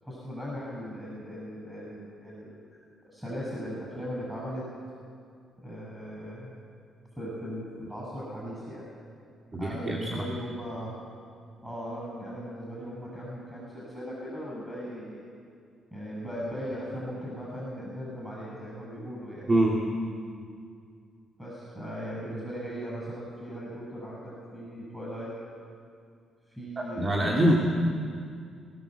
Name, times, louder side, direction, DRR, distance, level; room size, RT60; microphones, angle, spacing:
voice 1, 0.0-2.6 3.0-4.7 5.6-6.5 7.1-8.9 9.6-10.9 11.6-15.2 15.9-19.5 21.4-25.3 26.5-27.6, equal, 5° right, -5 dB, 7.3 m, -38 dB
voice 2, 9.5-10.1 19.5-19.8 26.8-27.5, right 1 dB, 30° right, -1 dB, 2.7 m, -24 dB
19.5 x 18.0 x 8.0 m, 2.3 s
cardioid pair, 90°, 0 cm